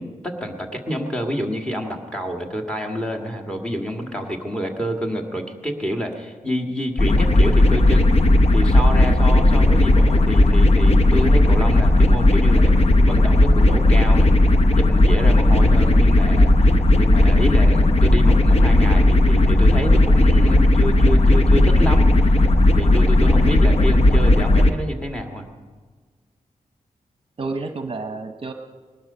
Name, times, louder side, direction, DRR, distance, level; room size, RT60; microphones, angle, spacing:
voice 1, 0.0-8.1 8.5-12.7 13.0-14.3 14.7-22.1 22.7-25.5, equal, 5° left, 3 dB, 1.9 m, -28 dB
sound 1, 7.0-24.7, left 1 dB, 50° left, 0.9 m, -15 dB
voice 2, 23.2-23.6 27.4-28.5, right 3 dB, 40° right, 6 dB, 0.9 m, -30 dB
20.0 x 12.5 x 5.6 m, 1.5 s
wide cardioid pair, 105°, 14 cm